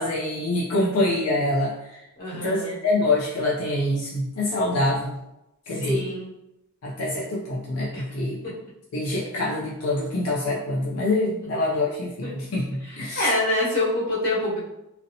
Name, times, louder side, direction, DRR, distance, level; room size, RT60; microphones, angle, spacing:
voice 1, 0.0-2.0 2.3-5.2 5.7-6.1 6.8-8.4 8.9-13.3, left 2 dB, 75° left, -5 dB, 0.4 m, -25 dB
voice 2, 2.2-2.7 5.8-6.3 7.9-8.0 11.4-11.6 12.2-12.3 13.1-14.6, left 1 dB, 45° left, -9 dB, 1.2 m, -26 dB
2.7 x 2.1 x 2.6 m, 0.89 s
head